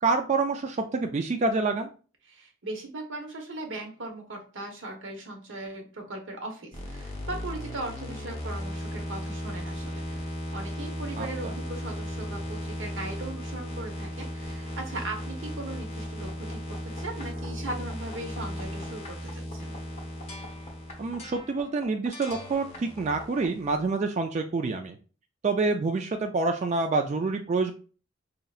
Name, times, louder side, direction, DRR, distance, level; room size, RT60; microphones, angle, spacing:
voice 1, 0.0-1.9 11.2-11.3 21.0-25.0 25.4-27.7, right 3 dB, 35° right, 4 dB, 0.3 m, -27 dB
voice 2, 2.2-19.7, right 2 dB, 80° right, 3 dB, 1.0 m, -39 dB
sound 1, 6.7-23.8, equal, 35° left, 1.0 m, -36 dB
5.3 x 2.8 x 2.4 m, 0.38 s
head